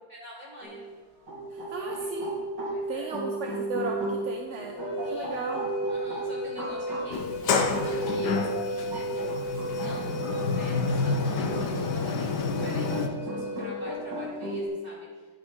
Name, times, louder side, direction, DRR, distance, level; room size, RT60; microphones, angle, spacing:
voice 1, 0.1-0.8 1.8-2.1 2.7-3.1 5.0-5.5 5.9-7.4 7.8-15.3, equal, 20° right, -7 dB, 4.0 m, -44 dB
sound 1, 0.6-0.8 1.3-7.1 7.7-11.7 12.0-14.7, right 1 dB, 75° right, 3.2 m, -35 dB
voice 2, 1.5-2.4 2.9-4.8 5.0-5.7, right 4 dB, 55° right, 2 dB, 0.9 m, -35 dB
Wind instrument woodwind instrument, 4.8-14.1, right 1 dB, 85° left, 1.6 m, -35 dB
Sliding door, 7.1-13.1, left 4 dB, 70° left, 1.4 m, -29 dB
12.5 x 8.5 x 3.7 m, 1.4 s
omnidirectional pair, 1.9 m